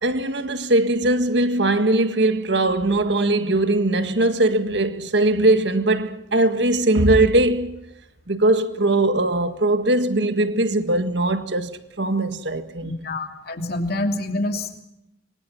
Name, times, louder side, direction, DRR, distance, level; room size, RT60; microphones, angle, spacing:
voice 1, 0.0-7.7 8.3-12.9, right 2 dB, 65° right, 1.7 m, -20 dB
voice 2, 12.8-14.8, left 1 dB, 55° left, 3.0 m, -27 dB
25.0 x 24.5 x 6.0 m
head